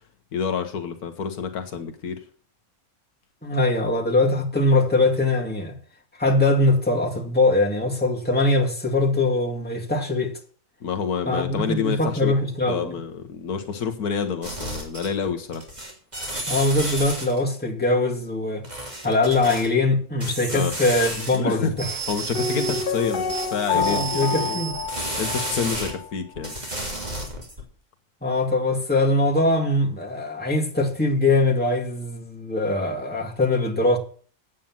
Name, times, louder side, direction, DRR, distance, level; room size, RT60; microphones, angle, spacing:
voice 1, 0.3-2.2 10.8-12.3 12.7-15.6 20.5-20.7 21.3-21.8 22.1-24.6 25.2-26.5, left 6 dB, 75° left, 1.6 m, -28 dB
voice 2, 3.4-5.8 6.2-10.3 11.3-13.0 16.5-18.6 19.0-21.9 23.7-24.8 28.2-34.0, left 2 dB, 5° left, 2.2 m, -22 dB
sound 1, 14.4-15.3 15.5-17.4 18.6-19.7 20.2-21.4 21.7-25.9 26.4-27.6, right 2 dB, 25° right, 3.1 m, -32 dB
Piano, 22.4-26.1 26.4-26.5, left 5 dB, 50° left, 0.7 m, -28 dB
8.8 x 8.4 x 7.4 m
omnidirectional pair, 1.6 m